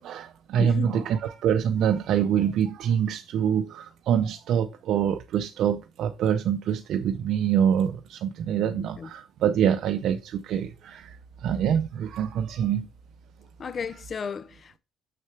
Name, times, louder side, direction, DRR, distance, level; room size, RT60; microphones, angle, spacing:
voice 1, 0.0-12.9, right 9 dB, 70° right, 0.5 m, -25 dB
voice 2, 0.6-1.0 8.6-9.1 13.6-14.8, left 6 dB, 40° left, 0.4 m, -34 dB
6.7 x 6.3 x 3.3 m
cardioid pair, 130°, 0 cm